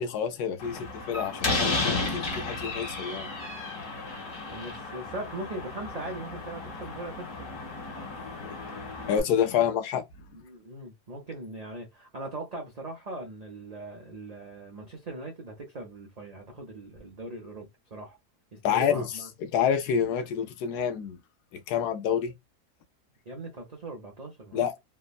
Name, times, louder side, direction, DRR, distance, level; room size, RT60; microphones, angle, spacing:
voice 1, 0.0-3.3 8.1-8.6 9.1-10.3 18.6-19.1 19.4-21.2 21.5-22.3 24.5-24.7, left 8 dB, 80° left, 1.2 m, -28 dB
Slam, 0.6-9.2, left 3 dB, 60° left, 1.5 m, -33 dB
voice 2, 4.5-7.5 10.3-18.2 18.5-19.3 23.3-24.8, right 2 dB, 50° right, 0.4 m, -40 dB
3.3 x 2.1 x 2.3 m
omnidirectional pair, 1.6 m